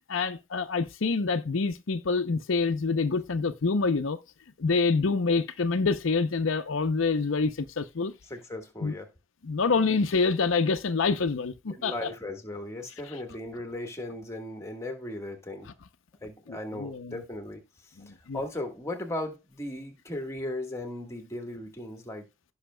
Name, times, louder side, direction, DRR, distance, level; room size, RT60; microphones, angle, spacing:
voice 1, 0.1-4.2 4.6-8.1 8.8-8.9 9.4-11.9 16.5-17.1 18.0-18.4, left 4 dB, 75° left, 0.6 m, -26 dB
voice 2, 8.3-9.1 11.8-15.7 16.2-22.3, left 1 dB, 15° left, 1.4 m, -37 dB
16.5 x 5.7 x 2.2 m
head